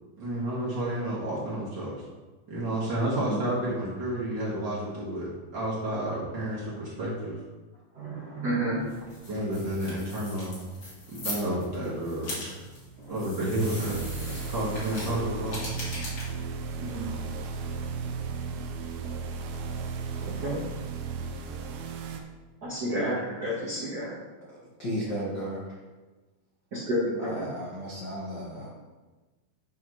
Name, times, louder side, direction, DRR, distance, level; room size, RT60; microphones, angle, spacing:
voice 1, 0.2-2.0 2.5-7.4 9.3-10.6 11.1-12.5 13.1-14.0 14.5-15.6, right 1 dB, 40° right, -7 dB, 1.6 m, -30 dB
voice 2, 7.9-9.0 13.0-13.2 16.8-17.1 20.3-20.6 22.6-24.2 26.7-27.5, equal, 70° right, -7 dB, 0.9 m, -31 dB
sound 1, 8.8-18.0, left 1 dB, 40° left, 2.6 m, -41 dB
sound 2, 13.6-22.2, right 5 dB, 90° right, 2.5 m, -35 dB
voice 3, 24.8-25.6 27.2-28.7, equal, 80° left, -6 dB, 0.9 m, -34 dB
9.9 x 5.7 x 3.2 m, 1.2 s
omnidirectional pair, 4.3 m